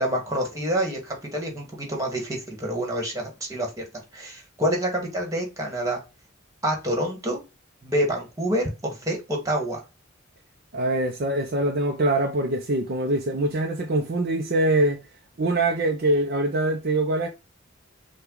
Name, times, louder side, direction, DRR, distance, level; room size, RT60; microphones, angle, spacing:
voice 1, 0.0-3.9 4.1-6.0 6.6-7.4 7.8-9.8, equal, 15° right, 1.6 m, -27 dB
voice 2, 10.7-15.0 15.4-17.3, right 1 dB, 50° right, 0.6 m, -23 dB
5.7 x 2.4 x 3.8 m
head